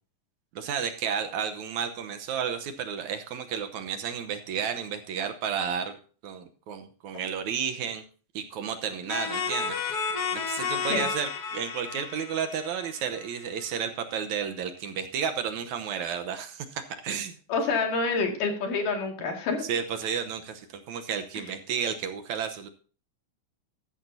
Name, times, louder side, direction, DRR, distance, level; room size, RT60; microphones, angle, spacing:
voice 1, 0.6-8.0 8.3-17.4 19.6-22.7, right 7 dB, 70° right, 7 dB, 2.1 m, -32 dB
sound 1, 9.1-13.7, left 6 dB, 55° left, 2.0 m, -32 dB
voice 2, 17.5-19.7, left 4 dB, 75° left, 2 dB, 3.8 m, -27 dB
14.0 x 12.5 x 2.7 m, 0.39 s
omnidirectional pair, 3.8 m